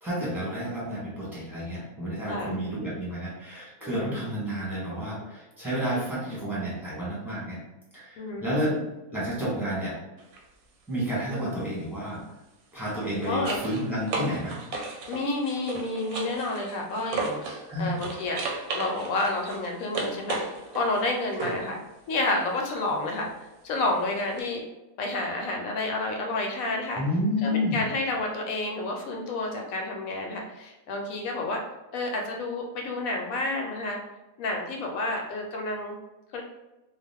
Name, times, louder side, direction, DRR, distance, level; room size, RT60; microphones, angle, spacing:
voice 1, 0.0-7.6 7.9-8.8 9.1-9.9 10.9-12.2 12.7-14.6 17.7-17.9 27.0-27.8, equal, ahead, -8 dB, 1.1 m, -30 dB
voice 2, 3.8-4.2 8.2-8.5 11.3-11.6 13.2-13.6 15.1-18.4 18.7-21.8 22.1-23.3 23.6-24.6 25.0-27.0 27.4-31.6 31.9-34.0 34.4-36.0 36.3-36.4, left 2 dB, 80° left, 1 dB, 1.0 m, -30 dB
sound 1, 10.2-10.4 12.7-17.7 18.0-21.7 24.4-24.5, right 3 dB, 90° right, 1.0 m, -35 dB
2.4 x 2.3 x 3.4 m, 1.0 s
omnidirectional pair, 1.5 m